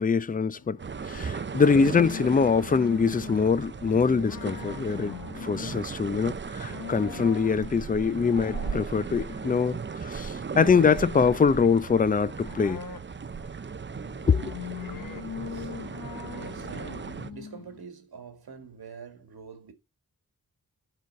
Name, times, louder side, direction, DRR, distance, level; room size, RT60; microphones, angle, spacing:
voice 1, 0.0-0.8 1.0-5.1 5.4-12.8 14.3-14.5, left 5 dB, 25° left, 0.5 m, -23 dB
sound 1, 0.6-17.8, left 7 dB, 60° left, 1.1 m, -42 dB
sound 2, 0.8-17.3, right 5 dB, 30° right, 0.6 m, -37 dB
voice 2, 16.3-19.7, right 5 dB, 80° right, 1.9 m, -45 dB
9.0 x 4.0 x 5.3 m
cardioid pair, 45°, 37 cm